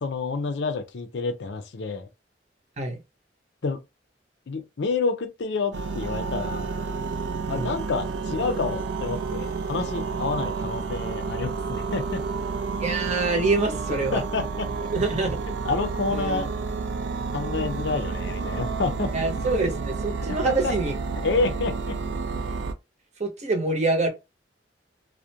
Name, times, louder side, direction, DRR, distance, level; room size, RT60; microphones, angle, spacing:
voice 1, 0.0-2.1 3.6-3.8 4.5-6.7 7.5-12.2 14.1-14.7 15.6-16.5 17.3-19.1 20.3-20.7 21.2-22.0, left 4 dB, 85° left, 0.5 m, -28 dB
sound 1, 5.7-22.7, right 4 dB, 75° right, 0.4 m, -30 dB
voice 2, 12.8-14.2 14.9-15.4 16.1-16.5 19.1-21.0 23.2-24.1, right 3 dB, 40° right, 0.7 m, -25 dB
2.4 x 2.1 x 2.7 m
head